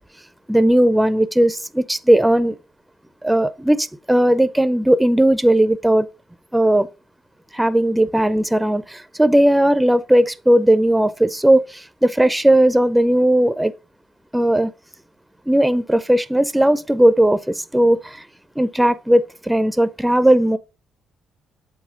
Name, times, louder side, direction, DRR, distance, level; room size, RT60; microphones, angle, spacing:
voice 1, 0.5-2.6 3.2-6.1 6.5-6.9 7.5-13.7 14.3-14.7 15.5-18.2 18.6-20.6, right 1 dB, 5° right, 0.4 m, -17 dB
7.1 x 3.9 x 3.6 m
cardioid pair, 90°, 0 cm